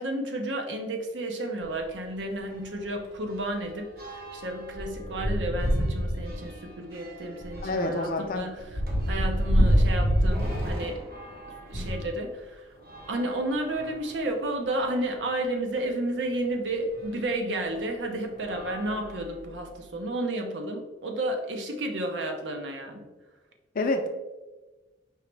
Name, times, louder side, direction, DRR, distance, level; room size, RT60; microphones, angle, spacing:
voice 1, 0.0-8.6 9.1-11.0 11.7-12.7 13.1-23.1, right 1 dB, 80° right, 3 dB, 0.7 m, -32 dB
sound 1, 1.6-1.8 2.2-2.3 2.6-12.1 12.8-14.1 14.8-14.9 15.2-15.3 17.0-17.1 17.7-18.0 18.4-19.6, equal, 55° right, 1.0 m, -29 dB
voice 2, 7.6-8.5 23.7-24.1, left 2 dB, 50° left, 5 dB, 0.5 m, -27 dB
4.7 x 2.9 x 3.2 m, 1.1 s
head